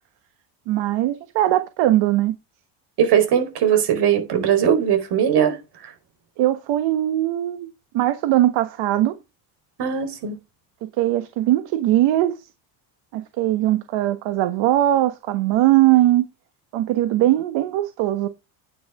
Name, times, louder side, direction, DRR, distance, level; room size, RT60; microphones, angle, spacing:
voice 1, 0.7-2.3 6.4-7.7 7.9-9.2 10.8-12.5 13.1-16.2 16.7-18.3, right 14 dB, 75° right, 1.3 m, -20 dB
voice 2, 3.0-5.6 5.8-5.9 9.8-10.4, right 8 dB, 60° right, 4.4 m, -19 dB
9.7 x 9.4 x 3.7 m
cardioid pair, 130°, 46 cm